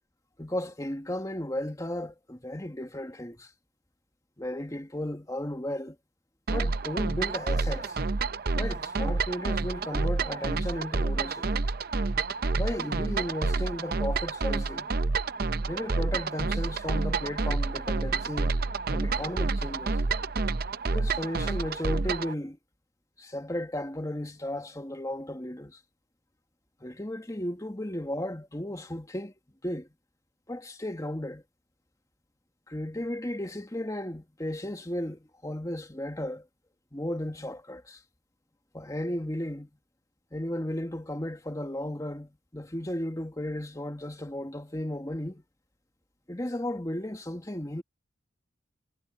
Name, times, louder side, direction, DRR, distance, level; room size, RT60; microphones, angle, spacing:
voice 1, 0.4-3.5 4.4-6.0 6.5-8.0 8.5-11.5 12.5-14.9 15.7-18.6 18.9-20.0 20.9-22.6 23.2-25.8 26.8-29.3 29.6-29.9 30.5-31.4 32.7-36.5 36.9-38.0 38.7-39.7 40.3-45.4 46.3-47.8, left 1 dB, 20° left, 1.7 m, -34 dB
sound 1, 6.5-22.3, right 3 dB, 55° right, 0.6 m, -29 dB
head